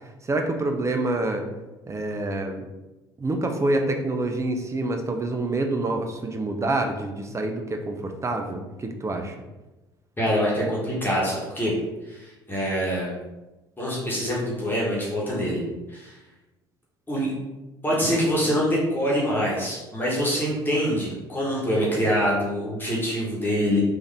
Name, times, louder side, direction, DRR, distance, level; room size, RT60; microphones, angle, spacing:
voice 1, 0.2-1.5 1.9-2.6 3.2-9.3, right 2 dB, 25° right, 4 dB, 0.6 m, -27 dB
voice 2, 10.2-11.7 12.1-13.1 13.8-15.6 15.9-16.1 17.1-17.3 17.8-23.8, equal, 15° left, -5 dB, 1.4 m, -25 dB
3.5 x 2.7 x 3.4 m, 1.1 s
hypercardioid pair, 60°, 12 cm